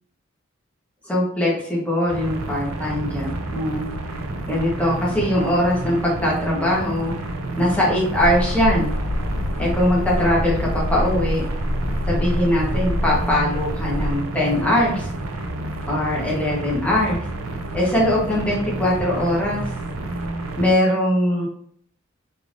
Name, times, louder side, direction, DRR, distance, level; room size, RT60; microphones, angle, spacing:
voice 1, 1.0-3.9 4.5-8.9 9.6-11.4 12.1-15.1 15.9-17.2 17.7-19.6 20.6-21.5, left 1 dB, 5° left, -5 dB, 1.1 m, -21 dB
sound 1, 2.1-20.7, right 2 dB, 80° right, 0.6 m, -30 dB
sound 2, 8.2-14.1, left 1 dB, 30° left, 0.4 m, -26 dB
3.5 x 3.3 x 2.5 m, 0.65 s
head